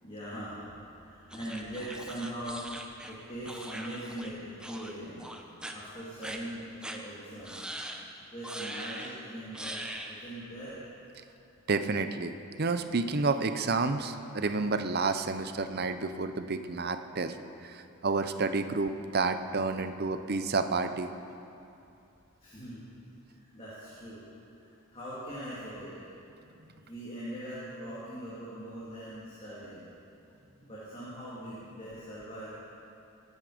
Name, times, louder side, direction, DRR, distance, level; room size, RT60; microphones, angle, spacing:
voice 1, 0.0-0.7 1.0-2.6 3.0-5.2 5.7-7.6 8.3-9.8 10.0-10.8 22.4-22.9 23.2-24.2 24.6-25.9 26.7-29.9 30.6-32.6, right 1 dB, 25° left, -10 dB, 3.1 m, -41 dB
sound 1, 1.3-4.3 4.6-4.9 5.2-5.7 6.2-6.4 6.8-7.0 7.4-8.0 8.4-9.1 9.5-10.1, right 1 dB, 5° right, 0.8 m, -41 dB
voice 2, 11.7-12.3 12.6-17.3 17.6-21.1, right 3 dB, 50° right, 9 dB, 0.7 m, -30 dB
22.0 x 9.6 x 5.2 m, 2.7 s
head